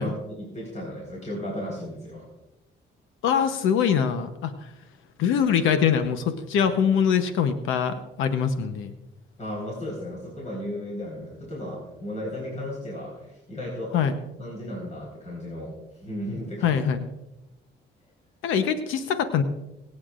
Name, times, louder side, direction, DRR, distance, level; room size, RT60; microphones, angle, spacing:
voice 1, 0.0-2.3 9.4-14.1 14.4-16.8, left 1 dB, 35° left, -3 dB, 4.4 m, -35 dB
voice 2, 3.2-4.7 5.2-8.9 13.9-14.2 16.6-17.0 18.4-19.4, left 7 dB, 90° left, 9 dB, 0.9 m, -23 dB
25.0 x 8.6 x 2.5 m, 0.95 s
cardioid pair, 90°, 20 cm